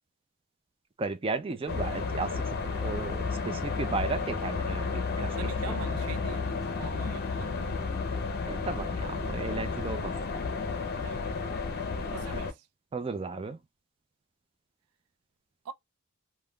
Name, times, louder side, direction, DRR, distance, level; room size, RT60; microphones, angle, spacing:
voice 1, 1.0-5.3 5.7-5.8 8.4-10.2 12.9-13.6, right 3 dB, 25° right, 0.4 m, -34 dB
sound 1, 1.7-12.5, left 4 dB, 45° left, 0.6 m, -32 dB
voice 2, 5.2-7.7 11.0-11.2 12.1-12.6 15.7-15.8, right 6 dB, 85° right, 0.4 m, -43 dB
3.5 x 2.2 x 2.3 m
head